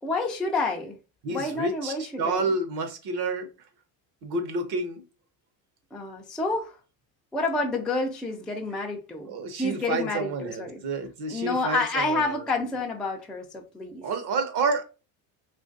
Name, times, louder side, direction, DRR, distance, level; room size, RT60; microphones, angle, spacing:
voice 1, 0.0-1.0 1.3-2.5 5.9-6.8 7.3-9.3 9.6-10.8 11.3-14.1, left 3 dB, ahead, 0.4 m, -29 dB
voice 2, 1.2-3.5 4.2-5.0 9.3-12.4 14.0-14.8, right 3 dB, 50° right, 1.0 m, -29 dB
3.0 x 2.5 x 3.8 m
cardioid pair, 120°, 49 cm